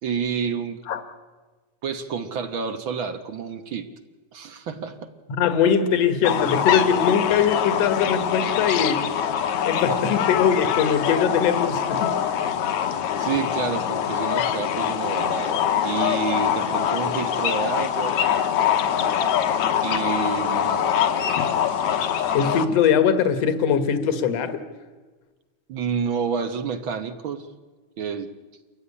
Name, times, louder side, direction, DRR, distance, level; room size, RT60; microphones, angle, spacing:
voice 1, 0.0-0.8 1.8-3.9 4.3-5.1 9.9-10.1 13.2-18.2 19.8-20.9 25.7-27.5 28.0-28.3, right 6 dB, 60° right, 9 dB, 1.4 m, -29 dB
voice 2, 5.4-9.1 9.7-12.1 22.3-24.6, left 7 dB, 60° left, 9 dB, 2.5 m, -21 dB
sound 1, 6.2-22.7, left 9 dB, 80° left, 2.5 m, -24 dB
28.5 x 14.0 x 9.8 m, 1.3 s
omnidirectional pair, 3.4 m